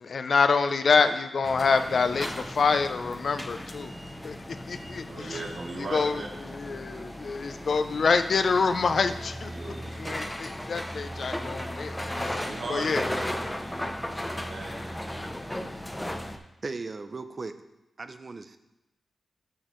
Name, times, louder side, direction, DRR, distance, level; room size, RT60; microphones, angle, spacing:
voice 1, 0.0-3.9 4.2-4.4 4.7-5.4 5.8-12.4 12.7-13.1, left 5 dB, 60° left, 10 dB, 0.5 m, -26 dB
sound 1, 1.4-16.4, left 1 dB, 10° left, 0.6 m, -36 dB
voice 2, 1.5-1.9 5.1-6.3 6.6-7.0 9.5-10.2 12.2-14.9 15.3-15.8, right 2 dB, 55° right, 0 dB, 1.1 m, -40 dB
voice 3, 16.6-17.6 18.0-18.6, right 3 dB, 40° right, 10 dB, 0.5 m, -37 dB
8.8 x 6.5 x 3.1 m, 0.95 s
wide cardioid pair, 100°, 0 cm